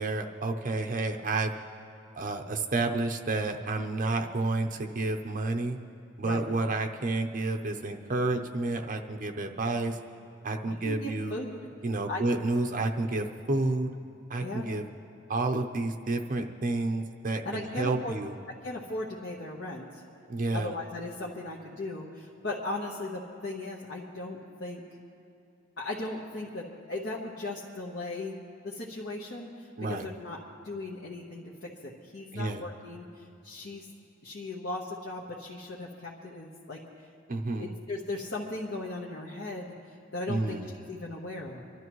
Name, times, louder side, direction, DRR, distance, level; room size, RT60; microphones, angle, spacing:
voice 1, 0.0-1.5 2.1-5.8 6.2-10.0 10.4-11.4 11.8-13.9 14.3-14.8 15.3-18.3 20.3-20.7 29.8-30.1 32.3-32.6 37.3-37.7 40.3-40.7, right 2 dB, 45° right, 4 dB, 0.6 m, -30 dB
voice 2, 10.7-11.6 12.1-12.2 14.4-14.7 17.4-18.1 18.6-20.0 20.5-24.8 25.8-28.4 28.6-30.4 30.6-33.9 34.2-36.8 37.6-40.6 40.9-41.6, left 2 dB, 65° left, -4 dB, 1.2 m, -37 dB
26.5 x 12.0 x 3.1 m, 2.8 s
head